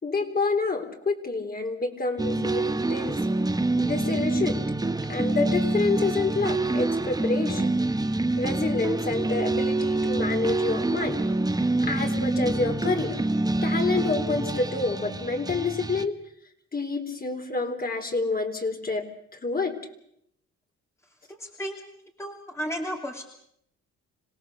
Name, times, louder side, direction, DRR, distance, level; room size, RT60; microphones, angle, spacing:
voice 1, 0.0-3.2 3.8-4.7 5.1-7.7 8.4-11.3 11.6-13.2 13.6-16.2 16.7-19.1 19.3-19.7, left 3 dB, 30° left, 4 dB, 3.9 m, -28 dB
sound 1, 2.2-16.1, right 2 dB, 15° right, 1.0 m, -26 dB
voice 2, 21.4-21.8 22.2-23.2, equal, 10° left, 1 dB, 2.8 m, -33 dB
26.5 x 17.5 x 6.8 m, 0.72 s
cardioid pair, 90°, 30 cm